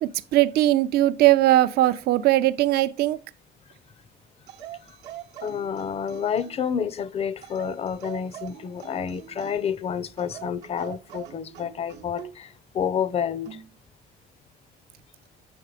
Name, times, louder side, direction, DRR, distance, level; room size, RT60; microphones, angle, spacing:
voice 1, 0.0-3.2, right 15 dB, 70° right, 0.4 m, -20 dB
sound 1, 4.5-6.7 7.4-9.8 10.2-12.4 13.4-13.7, right 12 dB, 85° right, 0.8 m, -43 dB
voice 2, 5.4-13.6, left 7 dB, 35° left, 0.5 m, -29 dB
6.9 x 3.3 x 4.9 m
cardioid pair, 110°, 17 cm